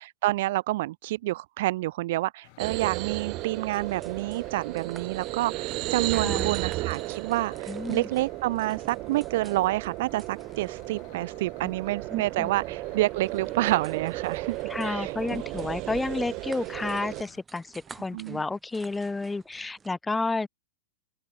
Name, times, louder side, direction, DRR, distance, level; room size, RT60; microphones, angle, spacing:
voice 1, 0.0-14.6 14.8-15.4 18.1-18.4, right 17 dB, 65° right, 0.4 m, -28 dB
sound 1, 2.4-17.4, left 37 dB, 50° left, 5.2 m, -55 dB
sound 2, 2.6-17.2, right 20 dB, 40° right, 1.4 m, -34 dB
sound 3, 3.4-19.9, right 5 dB, 15° right, 2.4 m, -54 dB
voice 2, 6.1-6.5 7.7-8.1 12.1-12.5 14.7-20.5, left 3 dB, 10° left, 1.0 m, -31 dB
open air
hypercardioid pair, 130°, 0 cm